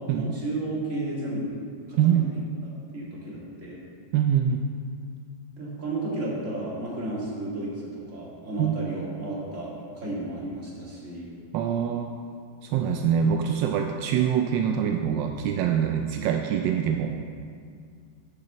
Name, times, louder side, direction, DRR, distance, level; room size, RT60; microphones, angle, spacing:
voice 1, 0.0-1.6 1.9-3.8 5.5-11.3, right 2 dB, 40° right, -6 dB, 2.6 m, -33 dB
voice 2, 4.1-4.6 8.6-8.7 11.5-12.1 12.6-17.2, right 8 dB, 85° right, 4 dB, 1.3 m, -24 dB
8.8 x 6.0 x 6.7 m, 2.2 s
omnidirectional pair, 2.0 m